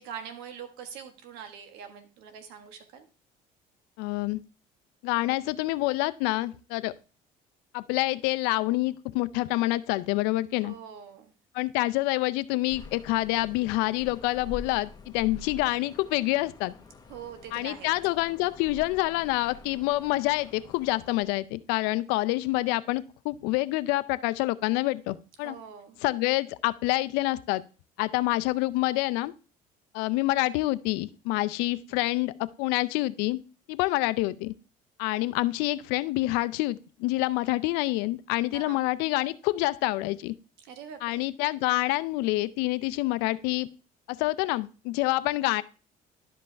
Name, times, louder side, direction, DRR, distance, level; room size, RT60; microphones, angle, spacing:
voice 1, 0.0-3.1 10.6-11.3 17.1-17.9 25.4-26.0 38.5-38.8 40.6-41.3, right 8 dB, 85° right, 7 dB, 1.4 m, -43 dB
voice 2, 4.0-4.4 5.0-6.9 7.7-10.7 11.5-16.7 17.5-25.6 26.0-27.6 28.0-29.3 29.9-33.4 33.7-34.5 35.0-40.3 41.0-43.7 44.1-45.6, left 19 dB, 90° left, 16 dB, 0.5 m, -27 dB
sound 1, 12.7-21.2, left 5 dB, 25° left, 1.1 m, -47 dB
11.5 x 5.3 x 3.4 m, 0.35 s
cardioid pair, 105°, 16 cm